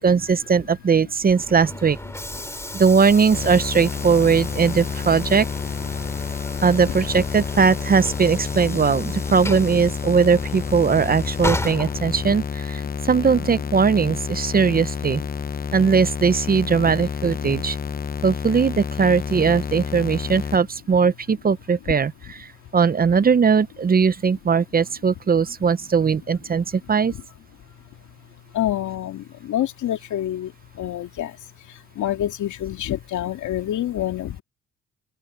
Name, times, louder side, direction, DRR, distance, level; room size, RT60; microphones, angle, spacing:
voice 1, 0.0-2.0 2.7-5.5 6.6-15.2 15.7-17.8 18.2-27.1, right 5 dB, 30° right, 0.7 m, -19 dB
Train / Sliding door, 1.2-12.6, left 1 dB, 10° left, 3.1 m, -34 dB
sound 1, 3.3-20.6, left 6 dB, 30° left, 0.8 m, -30 dB
voice 2, 6.2-6.6 12.8-12.9 15.6-15.7 27.1-27.2 28.5-34.4, left 12 dB, 75° left, 2.3 m, -28 dB
open air
cardioid pair, 90°, 30 cm